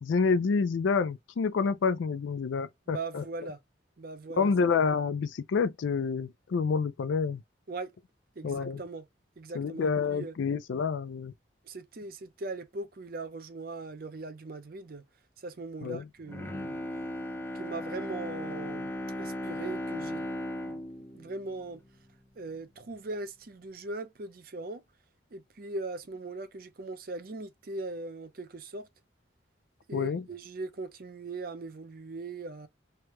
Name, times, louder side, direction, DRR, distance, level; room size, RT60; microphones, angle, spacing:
voice 1, 0.0-3.2 4.4-7.4 8.4-8.8 9.5-11.3 15.8-16.0 29.9-30.2, left 5 dB, 75° left, 0.4 m, -28 dB
voice 2, 2.9-3.6 4.0-4.5 7.7-7.9 8.4-9.1 9.4-10.3 11.6-15.0 15.4-16.8 17.5-18.9 19.2-20.3 20.6-20.8 21.1-21.8 22.4-24.8 25.3-28.9 29.9-32.7, right 3 dB, 50° right, 0.5 m, -40 dB
Bowed string instrument, 16.2-22.5 22.9-23.0, left 1 dB, 10° left, 0.5 m, -37 dB
3.3 x 2.2 x 2.8 m
head